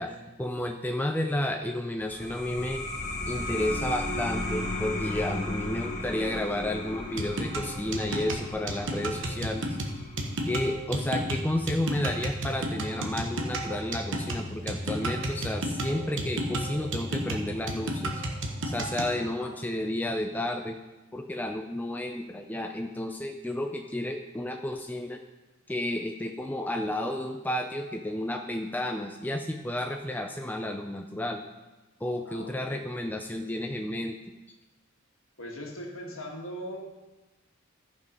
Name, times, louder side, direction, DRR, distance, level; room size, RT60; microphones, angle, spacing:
voice 1, 0.0-2.8 3.3-9.8 10.4-18.2 18.6-20.8 21.1-25.2 25.7-31.4 32.0-34.2, left 1 dB, 10° left, 4 dB, 0.4 m, -32 dB
sound 1, 2.0-13.2, left 2 dB, 35° left, 1.2 m, -36 dB
sound 2, 7.2-19.2, right 1 dB, 60° right, 1.2 m, -32 dB
sound 3, 11.3-18.8, right 2 dB, 30° right, 0.7 m, -46 dB
voice 2, 19.2-19.9 32.3-32.9 35.4-36.8, equal, 65° left, 0 dB, 1.8 m, -41 dB
14.0 x 5.3 x 5.3 m, 1.1 s
head